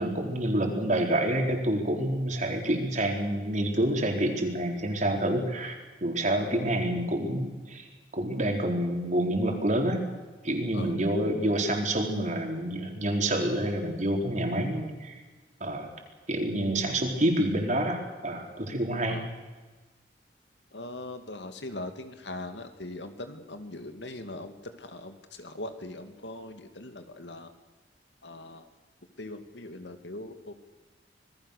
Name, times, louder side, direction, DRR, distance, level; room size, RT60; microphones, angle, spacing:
voice 1, 0.0-5.7 6.0-7.9 8.1-10.1 10.4-15.2 15.6-15.9 16.3-19.2, right 1 dB, 45° right, 2 dB, 4.2 m, -28 dB
voice 2, 20.7-27.5 28.2-28.7 29.2-30.5, left 2 dB, 75° left, 8 dB, 2.3 m, -41 dB
26.5 x 19.5 x 6.7 m, 1.2 s
head